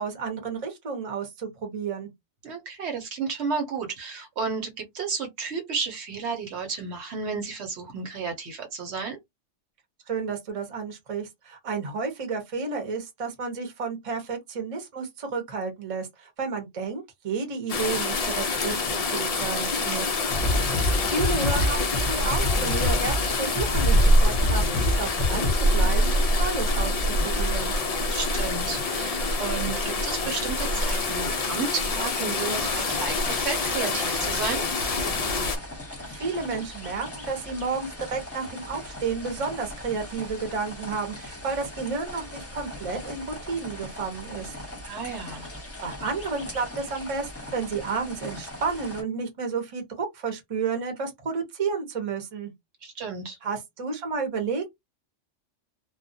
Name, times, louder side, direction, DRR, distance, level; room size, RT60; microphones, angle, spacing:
voice 1, 0.0-2.1 10.1-19.7 21.1-27.8 36.1-44.5 45.8-52.5 53.4-54.7, right 5 dB, 35° right, 0.7 m, -31 dB
voice 2, 2.4-9.2 19.8-20.0 20.4-20.5 28.1-34.6 44.8-45.5 52.8-53.4, right 5 dB, 65° right, 1.0 m, -32 dB
sound 1, 17.7-35.6, left 1 dB, 80° left, 0.3 m, -25 dB
sound 2, 20.3-25.6, left 1 dB, 50° left, 0.7 m, -27 dB
sound 3, 32.4-49.0, left 1 dB, 15° left, 0.7 m, -40 dB
2.3 x 2.1 x 2.6 m
omnidirectional pair, 1.2 m